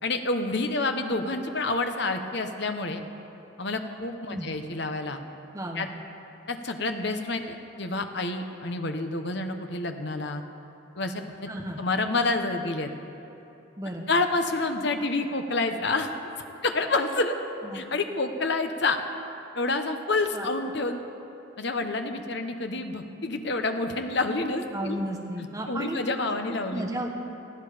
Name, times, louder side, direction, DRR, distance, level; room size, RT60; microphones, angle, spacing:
voice 1, 0.0-3.0 3.6-5.2 5.7-5.9 6.5-10.4 11.0-11.5 11.8-12.9 14.1-16.1 16.6-17.3 17.7-19.0 19.5-21.0 21.6-25.0 25.7-26.9, left 3 dB, 55° left, 6 dB, 1.1 m, -28 dB
voice 2, 5.5-5.9 11.5-11.8 13.8-14.1 17.6-17.8 20.3-20.5 24.7-26.0 26.7-27.2, equal, 15° right, 0 dB, 1.1 m, -33 dB
18.5 x 14.5 x 5.1 m, 2.9 s
head